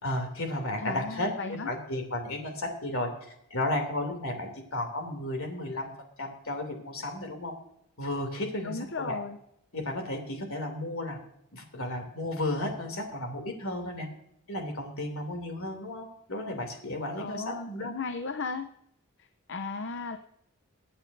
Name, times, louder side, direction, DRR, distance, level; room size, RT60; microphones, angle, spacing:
voice 1, 0.0-5.9 6.2-7.5 8.0-9.2 9.7-11.2 11.5-14.1 14.5-17.9, left 1 dB, 70° left, 4 dB, 2.9 m, -33 dB
voice 2, 0.8-1.7 8.6-9.4 17.2-18.7 19.2-20.2, left 4 dB, 55° left, 8 dB, 0.6 m, -36 dB
23.5 x 8.8 x 2.7 m, 0.74 s
head